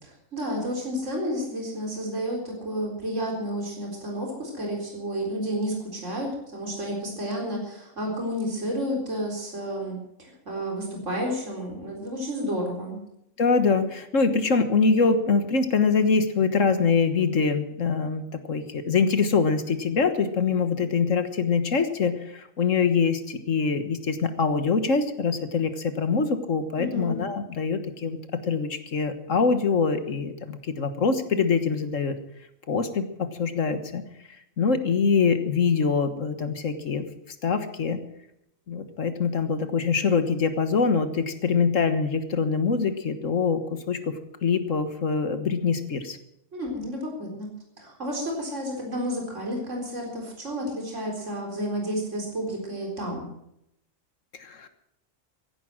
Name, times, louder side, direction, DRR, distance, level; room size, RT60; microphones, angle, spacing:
voice 1, 0.0-13.0 26.8-27.2 46.5-47.5 47.8-53.3, equal, 65° right, 0 dB, 4.4 m, -31 dB
voice 2, 13.4-28.2 28.5-32.2 32.7-34.0 34.6-37.0 37.4-38.0 38.7-44.2 44.4-46.2 54.4-54.7, left 5 dB, 75° left, 9 dB, 1.7 m, -24 dB
16.0 x 11.0 x 7.6 m, 0.80 s
omnidirectional pair, 1.4 m